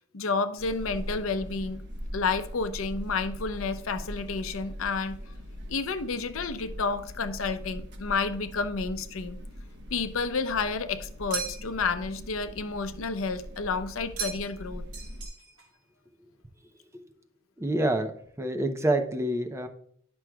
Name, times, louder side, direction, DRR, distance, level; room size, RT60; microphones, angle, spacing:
voice 1, 0.0-1.8 2.1-5.2 5.7-9.4 9.9-14.8, left 4 dB, 70° left, 0.6 m, -30 dB
sound 1, 0.6-15.3, equal, 55° right, 1.1 m, -41 dB
sound 2, 11.3-11.9 14.2-14.7 14.9-15.7, right 6 dB, 70° right, 2.0 m, -37 dB
voice 2, 17.6-18.1 18.4-19.7, right 1 dB, 15° right, 0.6 m, -27 dB
10.0 x 6.1 x 2.3 m
head